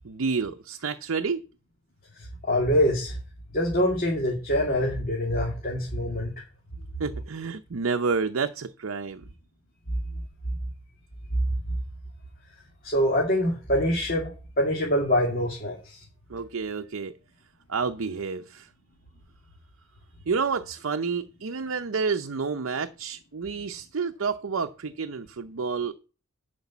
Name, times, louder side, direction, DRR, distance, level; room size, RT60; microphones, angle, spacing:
voice 1, 0.0-1.4 7.0-9.2 16.3-17.2 17.7-18.7 20.3-25.9, right 5 dB, 75° right, 0.6 m, -29 dB
voice 2, 2.2-3.2 3.5-6.3 12.8-16.0, equal, 45° left, 2.5 m, -25 dB
10.5 x 5.2 x 7.1 m
head